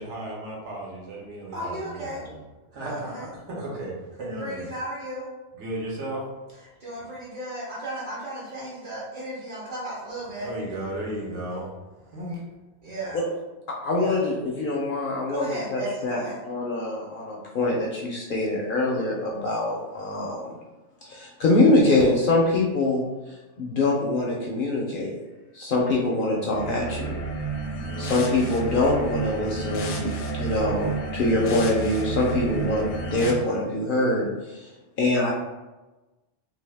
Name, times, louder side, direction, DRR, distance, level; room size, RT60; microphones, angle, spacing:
voice 1, 0.0-2.4 2.7-4.7 5.6-6.3 10.4-11.7 12.1-12.4, right 1 dB, 75° right, -3 dB, 1.1 m, -34 dB
voice 2, 1.5-2.2 2.8-3.3 4.3-5.3 6.8-10.5 12.8-13.2 14.0-14.2 15.3-16.4, right 1 dB, 45° right, -9 dB, 0.8 m, -34 dB
voice 3, 13.8-20.6 21.0-25.2 25.5-27.2 28.0-34.7 35.0-35.3, left 2 dB, 60° left, -2 dB, 0.6 m, -24 dB
sound 1, 26.5-33.3, right 3 dB, 80° left, 0.9 m, -31 dB
2.7 x 2.3 x 3.3 m, 1.1 s
omnidirectional pair, 1.2 m